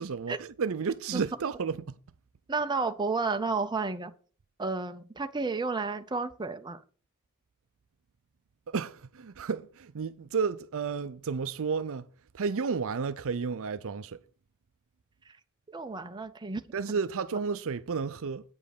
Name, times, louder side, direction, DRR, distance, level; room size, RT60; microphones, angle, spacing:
voice 1, 0.0-2.0 8.7-12.1 12.3-14.2 16.7-18.4, right 5 dB, 65° right, 0.5 m, -32 dB
voice 2, 2.5-4.1 4.6-6.8 15.7-16.6, right 4 dB, 20° right, 0.7 m, -31 dB
8.9 x 5.3 x 6.6 m
head